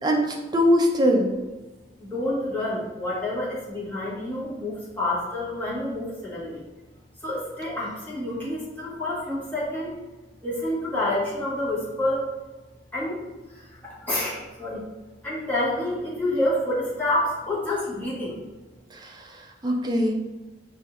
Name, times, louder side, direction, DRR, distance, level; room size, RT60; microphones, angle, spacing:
voice 1, 0.0-1.3 18.9-20.1, equal, 25° right, 1 dB, 0.5 m, -22 dB
voice 2, 2.0-6.6 7.2-10.0 10.4-12.2 12.9-13.2 13.5-14.8 15.2-18.4, left 1 dB, 10° left, -10 dB, 1.4 m, -28 dB
5.0 x 2.7 x 2.5 m, 1.1 s
head